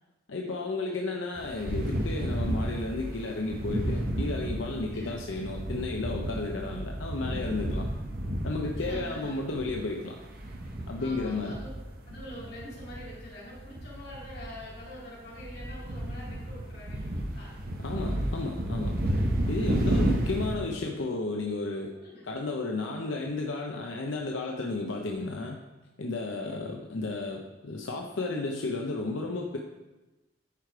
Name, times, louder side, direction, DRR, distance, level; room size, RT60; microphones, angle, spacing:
voice 1, 0.3-7.9 8.4-10.2 10.9-11.6 17.8-19.0 19.5-21.9 22.2-25.6 26.0-29.6, left 3 dB, 85° left, 1 dB, 0.7 m, -33 dB
sound 1, 1.4-13.2 13.5-20.6, right 1 dB, 50° right, 1.2 m, -32 dB
voice 2, 8.7-9.4 11.0-11.7 12.0-17.5 22.0-22.3 26.2-26.6, equal, 55° left, -6 dB, 3.0 m, -45 dB
10.5 x 4.9 x 4.7 m, 1.1 s
head